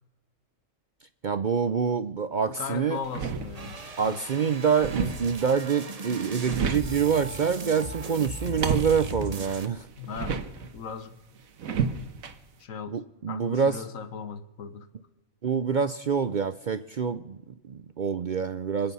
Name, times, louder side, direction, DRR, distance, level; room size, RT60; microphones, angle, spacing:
voice 1, 1.2-3.0 4.0-9.9 12.9-13.8 15.4-18.9, right 6 dB, 50° right, 12 dB, 0.6 m, -26 dB
voice 2, 2.4-4.6 10.0-11.2 12.6-13.0 13.3-14.9, left 6 dB, 80° left, 12 dB, 1.5 m, -38 dB
sound 1, 3.0-3.9 4.3-5.6 6.1-7.1 8.3-10.8 11.6-12.3, right 6 dB, 90° right, 1.5 m, -32 dB
sound 2, 3.5-9.7, right 3 dB, 30° right, 1.0 m, -38 dB
26.5 x 8.9 x 5.5 m, 1.1 s
omnidirectional pair, 1.4 m